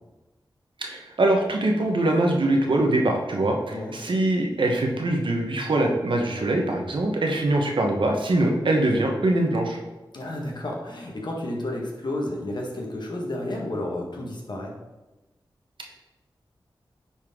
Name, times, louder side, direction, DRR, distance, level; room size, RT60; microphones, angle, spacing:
voice 1, 0.8-9.8, right 1 dB, 70° right, 1 dB, 1.3 m, -23 dB
voice 2, 10.1-14.7, left 1 dB, 60° left, -1 dB, 1.7 m, -31 dB
9.4 x 4.5 x 3.8 m, 1.1 s
wide cardioid pair, 60°, 9 cm